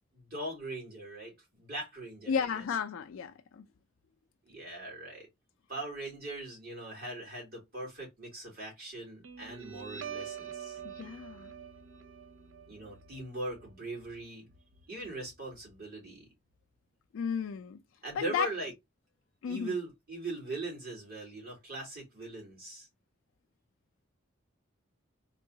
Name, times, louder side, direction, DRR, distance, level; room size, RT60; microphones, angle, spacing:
voice 1, 0.1-2.5 4.5-5.3 5.7-10.8 12.7-14.5 14.9-16.3 18.0-18.7 19.5-22.9, right 2 dB, 50° right, 2.4 m, -40 dB
voice 2, 2.3-3.7 11.0-11.5 17.1-17.8 18.1-18.5 19.4-19.7, left 7 dB, 85° left, 0.4 m, -33 dB
Guitar, 9.2-16.2, right 8 dB, 80° right, 0.6 m, -46 dB
3.7 x 3.0 x 2.7 m
head